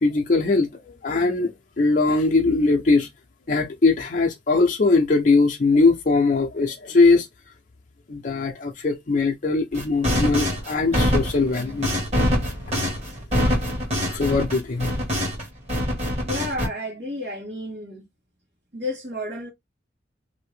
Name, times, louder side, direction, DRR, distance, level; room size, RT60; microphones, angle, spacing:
voice 1, 0.0-3.1 3.5-7.3 8.1-11.9 13.4-13.6 14.1-14.9, left 3 dB, 45° left, 0.5 m, -21 dB
sound 1, 9.7-15.4 15.7-16.7, equal, 35° right, 1.4 m, -24 dB
voice 2, 16.2-18.0 18.7-19.5, left 1 dB, 75° right, 1.3 m, -31 dB
2.7 x 2.6 x 3.1 m
head